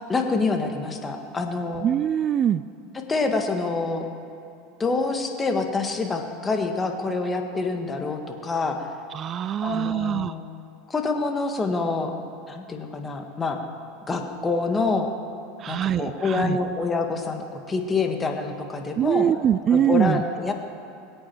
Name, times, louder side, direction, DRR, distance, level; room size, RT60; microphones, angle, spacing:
voice 1, 0.0-1.8 3.1-4.1 4.8-8.9 9.6-10.4 10.9-12.1 12.5-13.6 14.1-15.1 15.7-19.3 19.7-20.5, left 3 dB, 20° left, 4 dB, 1.7 m, -26 dB
voice 2, 1.8-2.6 9.1-10.3 15.6-16.6 19.0-20.2, right 9 dB, 40° right, 15 dB, 0.3 m, -23 dB
22.0 x 8.6 x 4.6 m, 2.6 s
hypercardioid pair, 105°, 0 cm